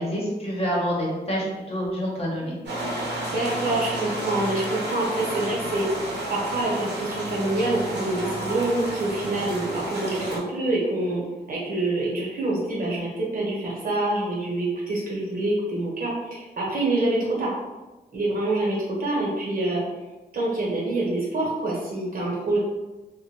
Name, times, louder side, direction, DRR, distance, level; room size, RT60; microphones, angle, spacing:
voice 1, 0.0-2.6, equal, 35° left, -4 dB, 0.9 m, -27 dB
sound 1, 2.6-10.4, right 1 dB, 85° right, 0.7 m, -31 dB
voice 2, 3.3-11.2 11.5-17.5 18.1-19.8 20.3-22.6, right 2 dB, 55° right, -5 dB, 1.0 m, -26 dB
2.4 x 2.2 x 3.1 m, 1.1 s
cardioid pair, 85°, 17 cm